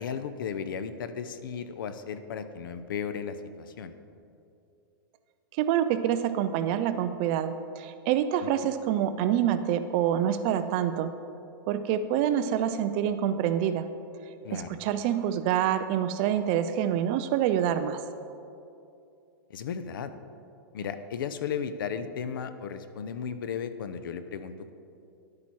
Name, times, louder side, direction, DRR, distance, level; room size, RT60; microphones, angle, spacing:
voice 1, 0.0-3.9 8.4-8.5 14.4-14.8 19.5-20.1 20.7-24.7, left 7 dB, 65° left, 11 dB, 0.7 m, -35 dB
voice 2, 5.6-11.1 11.7-13.9 14.5-18.0, right 10 dB, 25° right, 11 dB, 0.3 m, -26 dB
10.5 x 8.5 x 4.6 m, 2.6 s
hypercardioid pair, 165°, 12 cm